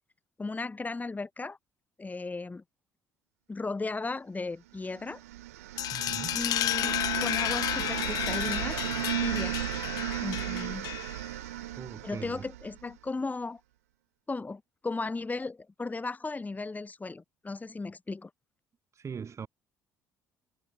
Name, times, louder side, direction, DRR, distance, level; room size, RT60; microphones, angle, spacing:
voice 1, 0.4-1.6 2.0-2.6 3.5-5.2 6.3-8.8 9.2-9.6 10.2-10.9 12.0-13.6 14.3-18.3, left 3 dB, 20° left, 2.5 m, -36 dB
sound 1, 4.9-12.9, right 16 dB, 75° right, 1.2 m, -35 dB
sound 2, 5.8-11.3, left 14 dB, 50° left, 0.4 m, -32 dB
voice 2, 5.9-6.4 11.8-12.4 19.0-19.5, right 6 dB, 35° right, 6.3 m, -40 dB
figure-of-eight pair, 50°, 8 cm